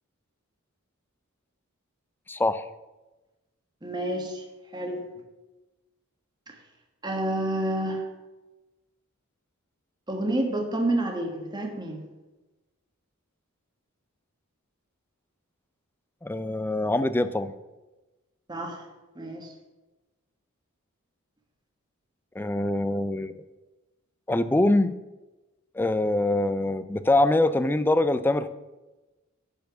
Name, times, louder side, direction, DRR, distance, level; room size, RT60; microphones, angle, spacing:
voice 1, 2.3-2.7 16.2-17.5 22.4-23.3 24.3-24.9 25.7-28.5, left 2 dB, 10° left, 12 dB, 0.3 m, -24 dB
voice 2, 3.8-4.5 4.7-5.0 6.5-6.6 7.0-8.1 10.1-12.0 18.5-18.8 19.1-19.5, right 1 dB, 20° right, 1 dB, 1.2 m, -29 dB
10.5 x 4.5 x 6.8 m, 1.1 s
head